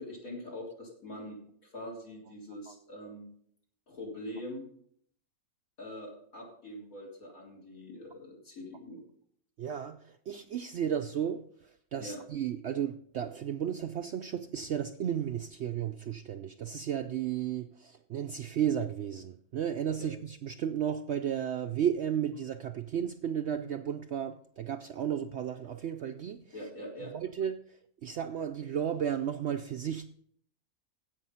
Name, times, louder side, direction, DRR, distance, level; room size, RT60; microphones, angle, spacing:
voice 1, 0.0-3.3 3.9-4.7 5.8-9.0 12.0-12.2 20.0-20.1 26.5-27.1, left 1 dB, 65° left, 4.1 m, -43 dB
voice 2, 9.6-26.4 27.1-30.1, right 9 dB, 65° right, 0.7 m, -34 dB
16.0 x 5.5 x 5.6 m
omnidirectional pair, 1.6 m